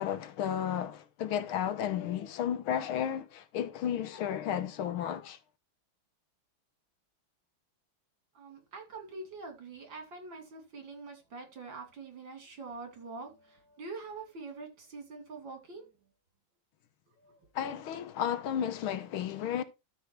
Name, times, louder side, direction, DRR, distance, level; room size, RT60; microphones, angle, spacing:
voice 1, 0.0-5.4 17.6-19.6, left 9 dB, 80° left, 1.8 m, -33 dB
voice 2, 8.4-15.9 17.2-17.4, right 3 dB, 60° right, 3.6 m, -45 dB
13.0 x 4.7 x 4.6 m
omnidirectional pair, 2.3 m